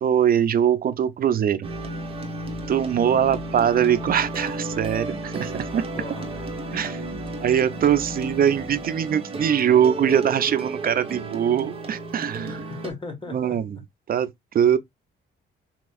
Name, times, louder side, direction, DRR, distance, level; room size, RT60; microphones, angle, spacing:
voice 1, 0.0-1.7 2.7-5.9 6.7-7.0 7.4-12.6 13.3-13.8 14.1-14.8, right 9 dB, 50° right, 0.5 m, -22 dB
sound 1, 1.6-12.9, right 2 dB, 30° right, 1.1 m, -33 dB
voice 2, 3.0-3.3 5.9-6.5 12.4-13.6, left 3 dB, 25° left, 1.4 m, -38 dB
4.2 x 2.9 x 2.3 m
cardioid pair, 90°, 20 cm